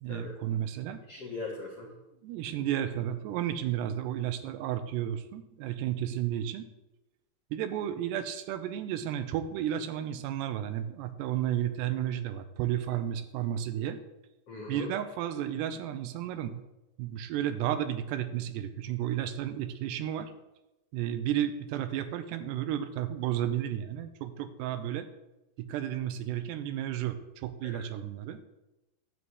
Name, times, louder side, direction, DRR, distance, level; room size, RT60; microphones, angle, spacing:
voice 1, 0.0-1.0 1.8-6.6 7.5-14.0 14.7-16.6 17.0-20.3 20.9-25.1 25.6-28.4, right 11 dB, 85° right, 10 dB, 2.8 m, -32 dB
voice 2, 1.1-1.9 14.5-14.9 27.6-27.9, left 3 dB, 55° left, -4 dB, 1.8 m, -39 dB
11.0 x 4.8 x 7.9 m, 0.97 s
omnidirectional pair, 4.8 m